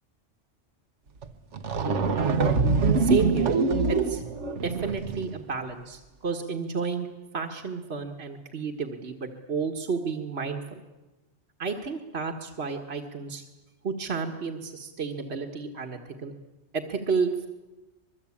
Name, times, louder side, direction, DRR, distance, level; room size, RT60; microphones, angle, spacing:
sound 1, 1.2-1.3 1.5-5.3, right 4 dB, 75° right, 1.6 m, -24 dB
voice 1, 3.0-3.6 3.9-4.2 4.6-7.1 7.3-10.8 11.6-13.4 13.8-16.3 16.7-17.5, right 5 dB, 60° right, 3 dB, 1.8 m, -31 dB
24.5 x 22.5 x 8.6 m, 1.1 s
omnidirectional pair, 1.2 m